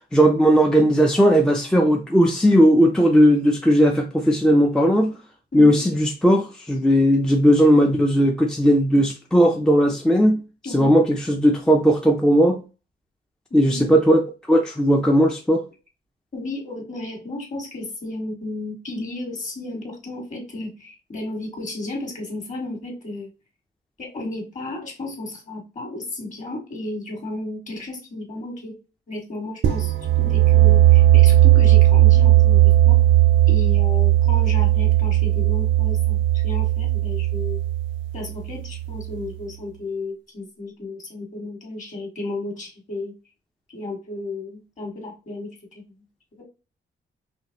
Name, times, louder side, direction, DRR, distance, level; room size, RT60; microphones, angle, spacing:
voice 1, 0.1-5.1 5.5-10.4 10.7-12.6 13.5-14.2 14.5-15.6, equal, 5° left, 0.4 m, -17 dB
voice 2, 5.5-5.8 10.6-11.0 13.5-13.9 16.3-23.3 24.0-28.7 29.1-33.0 33.5-37.6 38.1-43.1 43.7-45.8 46.4-46.5, left 2 dB, 40° left, 1.7 m, -33 dB
sound 1, 29.6-39.2, right 14 dB, 80° right, 0.5 m, -16 dB
5.2 x 3.1 x 2.8 m
wide cardioid pair, 175°, 20 cm